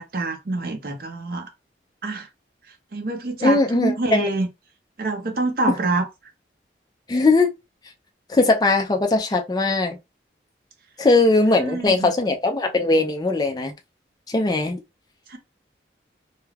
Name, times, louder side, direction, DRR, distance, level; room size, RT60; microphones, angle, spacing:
voice 1, 0.0-1.5 2.0-2.3 2.9-4.5 5.0-6.1 11.6-12.1 15.3-15.4, right 2 dB, 50° right, 0.5 m, -26 dB
voice 2, 3.4-4.3 7.1-7.5 8.3-10.0 11.0-13.7 14.3-14.8, left 2 dB, 20° left, 0.4 m, -19 dB
2.3 x 2.2 x 3.2 m
head